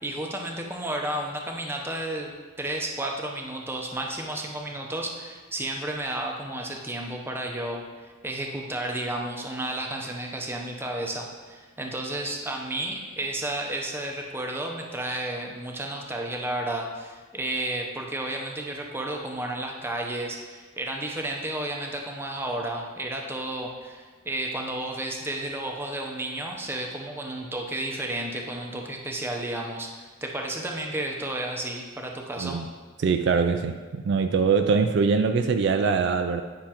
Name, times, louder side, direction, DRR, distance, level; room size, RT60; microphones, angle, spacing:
voice 1, 0.0-2.3 2.6-32.6, right 1 dB, 10° right, 1 dB, 0.7 m, -32 dB
voice 2, 32.4-32.7 33.0-36.4, right 5 dB, 55° right, 7 dB, 0.3 m, -23 dB
9.7 x 5.8 x 2.9 m, 1.4 s
head